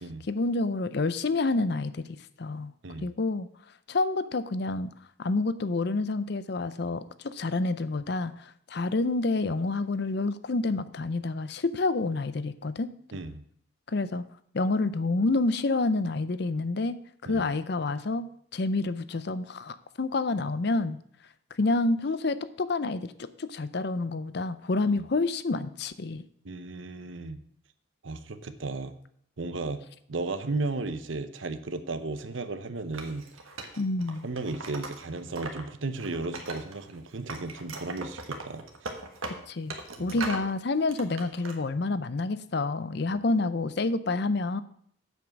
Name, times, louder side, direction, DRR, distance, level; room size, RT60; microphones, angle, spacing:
voice 1, 0.3-2.1 2.4-2.7 3.0-3.5 3.9-4.9 5.2-12.9 13.9-14.3 14.5-21.0 21.5-26.2 33.8-34.3 39.5-44.6, left 3 dB, 55° left, 14 dB, 0.5 m, -28 dB
voice 2, 13.1-13.4 17.3-17.4 24.9-25.0 26.4-27.4 28.0-29.0 29.4-33.3 34.2-38.9 40.0-40.2, right 3 dB, 70° right, 11 dB, 0.8 m, -35 dB
Wood, 32.9-35.6 35.9-37.0 37.3-40.5 40.9-41.5, right 3 dB, 90° right, 1.5 m, -39 dB
8.0 x 7.4 x 5.9 m, 0.65 s
head